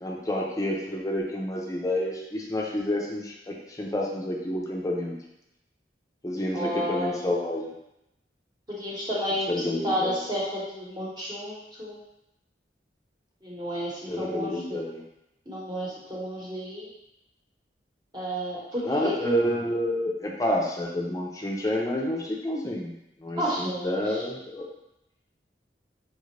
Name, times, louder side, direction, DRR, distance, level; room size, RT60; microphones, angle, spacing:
voice 1, 0.0-5.2 6.2-7.7 9.5-10.2 14.1-15.0 18.8-22.9 23.2-24.7, left 1 dB, 20° left, -2 dB, 0.6 m, -29 dB
voice 2, 6.5-7.2 8.8-12.0 13.4-14.8 15.5-16.9 18.1-19.1 23.4-24.2, equal, 25° right, -6 dB, 1.1 m, -31 dB
5.0 x 2.5 x 3.2 m, 0.86 s
head